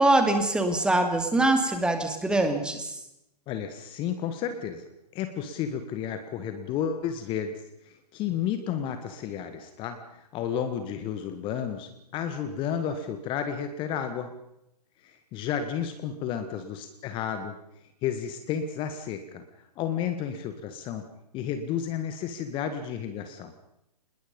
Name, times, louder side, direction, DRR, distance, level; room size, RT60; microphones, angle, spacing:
voice 1, 0.0-3.0, right 2 dB, 5° right, 6 dB, 2.5 m, -23 dB
voice 2, 3.5-4.8 5.1-7.6 7.9-14.3 15.0-17.6 18.0-19.4 19.8-21.0 21.3-23.5, left 8 dB, 25° left, 8 dB, 1.7 m, -32 dB
26.5 x 21.0 x 5.4 m, 0.85 s
figure-of-eight pair, 125°, 21 cm